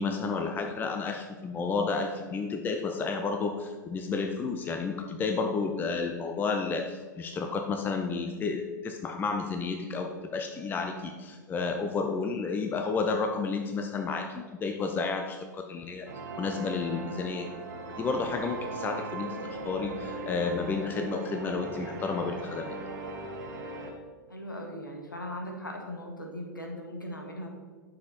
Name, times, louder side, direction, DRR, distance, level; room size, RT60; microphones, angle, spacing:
voice 1, 0.0-16.1 16.4-17.5 18.0-19.4 19.6-22.7, left 4 dB, 20° left, 5 dB, 0.7 m, -31 dB
sound 1, 16.1-23.9, right 2 dB, 60° right, 1.4 m, -39 dB
voice 2, 24.3-27.5, left 1 dB, 85° left, 1 dB, 1.7 m, -39 dB
9.5 x 6.6 x 4.2 m, 1.4 s
figure-of-eight pair, 100°, 11 cm